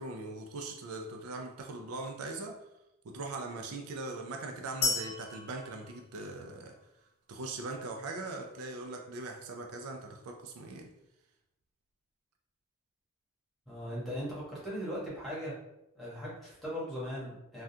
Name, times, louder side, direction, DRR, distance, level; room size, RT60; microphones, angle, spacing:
voice 1, 0.0-2.6 3.0-6.8 7.3-10.9, right 2 dB, 85° right, 3 dB, 0.4 m, -40 dB
sound 1, 4.8-6.8, left 4 dB, 80° left, 0.6 m, -35 dB
voice 2, 13.7-15.5 15.9-17.6, equal, ahead, -8 dB, 1.1 m, -38 dB
3.5 x 2.3 x 2.7 m, 0.86 s
head